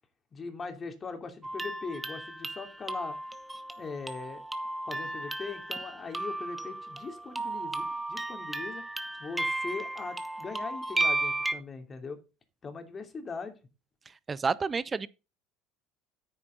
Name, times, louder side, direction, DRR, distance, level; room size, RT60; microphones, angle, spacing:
voice 1, 0.3-3.1 3.8-4.4 4.9-8.8 9.2-12.2 12.6-13.5, left 4 dB, 30° left, 2.9 m, -40 dB
sound 1, 1.4-11.5, right 2 dB, 10° right, 1.6 m, -34 dB
voice 2, 14.3-15.1, right 5 dB, 25° right, 0.8 m, -29 dB
9.8 x 9.4 x 3.9 m
hypercardioid pair, 75°, 0 cm